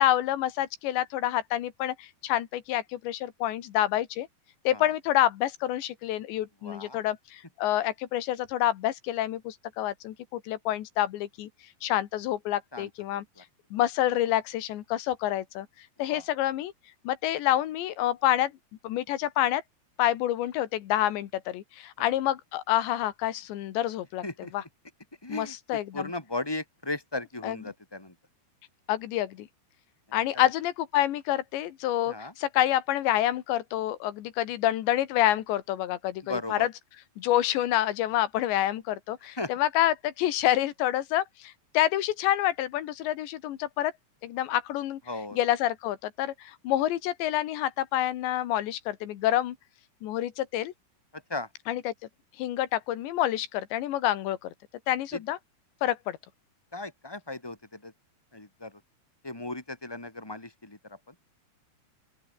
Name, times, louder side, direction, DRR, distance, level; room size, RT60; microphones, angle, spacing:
voice 1, 0.0-4.3 4.7-11.5 11.8-13.3 13.7-15.7 16.0-16.7 17.1-18.5 18.8-19.6 20.0-24.2 24.5-24.6 25.3-26.1 27.4-27.6 28.9-29.5 30.1-36.7 37.2-43.9 44.2-45.0 45.3-49.6 50.0-50.7 51.7-51.9 52.4-54.5 54.9-55.4 55.8-56.2, left 13 dB, 90° left, 3.9 m, -28 dB
voice 2, 6.6-7.0 12.7-13.4 16.1-16.2 22.0-22.1 24.2-24.5 25.2-28.1 30.1-30.2 32.1-32.3 36.2-36.7 39.4-39.5 45.1-45.4 51.1-51.5 55.1-55.2 56.7-57.9 58.3-58.8 59.2-61.1, left 2 dB, 5° left, 4.8 m, -37 dB
open air
omnidirectional pair, 4.9 m